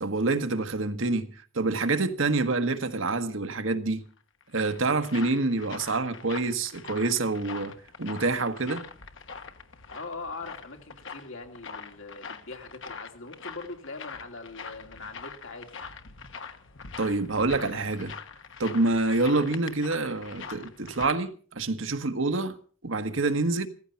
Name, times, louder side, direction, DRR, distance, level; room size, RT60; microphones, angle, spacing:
voice 1, 0.0-4.0 4.5-8.9 17.0-18.1 18.6-22.6 22.8-23.7, right 3 dB, 75° right, 1.4 m, -27 dB
sound 1, 4.2-21.2, left 5 dB, 70° left, 1.3 m, -43 dB
voice 2, 9.9-15.7, left 3 dB, 85° left, 2.8 m, -41 dB
16.0 x 15.0 x 5.8 m
head